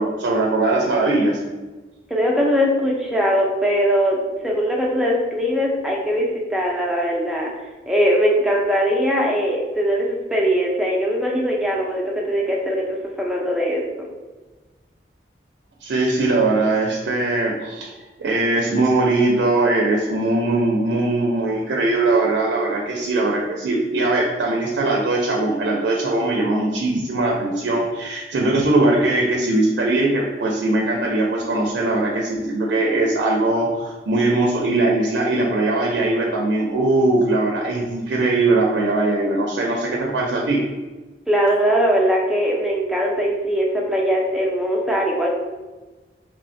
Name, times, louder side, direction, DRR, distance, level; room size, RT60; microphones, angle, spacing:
voice 1, 0.0-1.4 15.8-17.9 18.2-40.6, right 2 dB, 85° right, -2 dB, 0.4 m, -20 dB
voice 2, 2.1-12.8 13.2-13.8 41.3-45.4, equal, 5° right, -3 dB, 0.4 m, -21 dB
3.0 x 2.1 x 2.5 m, 1.2 s
head